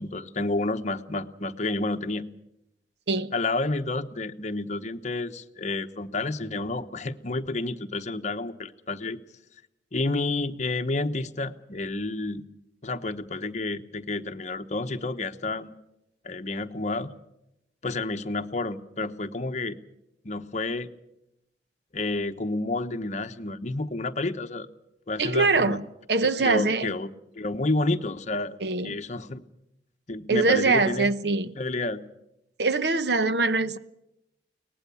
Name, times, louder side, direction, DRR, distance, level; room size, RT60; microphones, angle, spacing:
voice 1, 0.0-2.3 3.3-9.2 9.9-12.4 12.8-15.7 16.2-17.1 17.8-19.8 20.2-20.9 21.9-24.7 25.1-25.8 26.4-27.1 27.4-28.6 28.8-29.4 30.1-31.1 31.6-32.0, left 2 dB, 45° left, 8 dB, 1.0 m, -30 dB
voice 2, 25.2-25.8 26.1-26.9 28.6-29.0 30.3-31.6 32.6-33.8, right 3 dB, 70° right, 13 dB, 0.9 m, -23 dB
23.0 x 19.0 x 7.0 m, 0.86 s
head